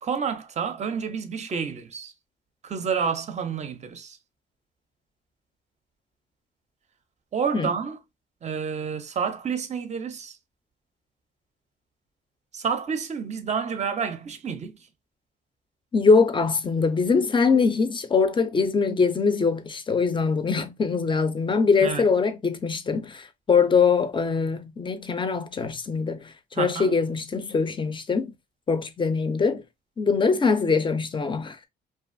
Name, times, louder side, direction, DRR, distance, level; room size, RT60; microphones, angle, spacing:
voice 1, 0.0-2.1 2.6-4.2 7.3-8.0 8.4-10.4 12.5-14.8 21.8-22.1 26.5-27.0, right 6 dB, 35° right, 0.5 m, -29 dB
voice 2, 15.9-28.3 28.7-29.6 30.0-31.7, left 5 dB, 25° left, 0.5 m, -23 dB
2.5 x 2.3 x 2.4 m
cardioid pair, 90°, 20 cm